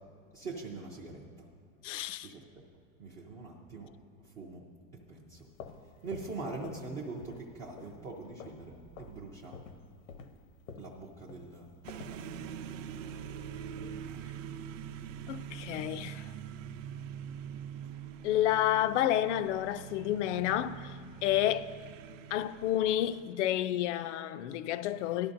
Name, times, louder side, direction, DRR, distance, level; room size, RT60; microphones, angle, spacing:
voice 1, 0.3-1.5 2.2-2.6 3.0-3.9 4.2-4.6 4.9-5.5 6.0-9.6 10.8-11.7 11.9-12.6 14.1-14.2, right 3 dB, 15° right, 0.4 m, -43 dB
voice 2, 1.8-2.3 13.8-14.0 15.3-16.3 18.2-21.7 22.3-25.3, left 12 dB, 65° left, 0.5 m, -30 dB
sound 1, 5.4-6.9 7.2-7.5 7.8-8.7 8.9-9.2 9.5-12.2, left 5 dB, 80° left, 1.0 m, -48 dB
sound 2, 11.8-23.6, right 8 dB, 75° right, 0.7 m, -44 dB
17.0 x 12.0 x 2.6 m
supercardioid pair, 170°, 39 cm